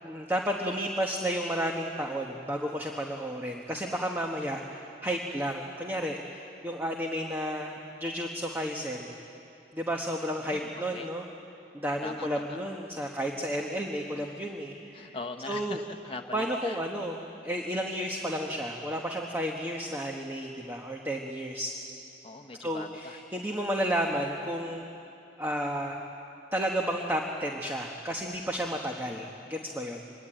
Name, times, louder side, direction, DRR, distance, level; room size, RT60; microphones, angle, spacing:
voice 1, 0.0-9.2 9.7-11.3 11.7-15.2 15.5-15.8 16.3-21.7 22.6-24.9 25.4-26.0 26.5-30.1, equal, 10° right, 1 dB, 1.3 m, -32 dB
voice 2, 10.4-11.1 12.0-12.6 14.9-16.8 22.2-23.2, left 3 dB, 30° left, 4 dB, 1.1 m, -41 dB
25.0 x 22.0 x 8.9 m, 2.8 s
head